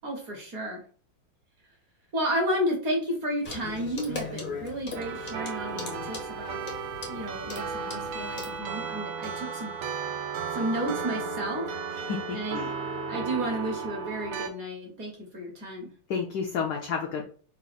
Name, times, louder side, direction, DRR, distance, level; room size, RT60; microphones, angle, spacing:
voice 1, 0.0-0.8 2.1-6.6 7.1-9.7 10.5-11.7 12.3-12.6 13.1-15.9, equal, 50° right, 0 dB, 1.2 m, -32 dB
Clock, 3.4-8.6, left 4 dB, 55° left, 0.5 m, -39 dB
sound 1, 4.9-14.5, right 5 dB, 85° right, 1.6 m, -34 dB
voice 2, 11.9-12.7 16.1-17.2, left 6 dB, 80° left, 1 dB, 0.9 m, -31 dB
4.2 x 2.4 x 4.0 m, 0.43 s
omnidirectional pair, 2.4 m